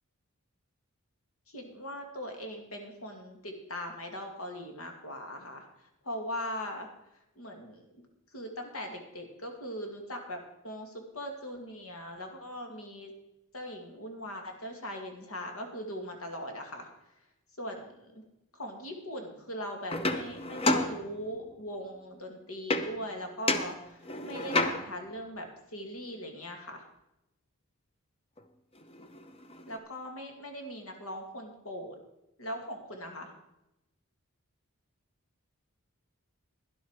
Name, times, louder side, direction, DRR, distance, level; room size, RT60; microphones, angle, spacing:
voice 1, 1.5-5.7 6.0-6.9 7.4-7.9 8.3-13.1 13.5-16.9 17.6-18.2 18.5-26.8 29.7-32.0 32.4-33.3, equal, 75° left, 4 dB, 2.3 m, -40 dB
sound 1, 19.9-21.5 22.7-23.2 23.5-25.1 28.4-28.5 28.8-29.8, left 2 dB, 25° left, 0.8 m, -31 dB
12.0 x 11.0 x 4.8 m, 0.89 s
head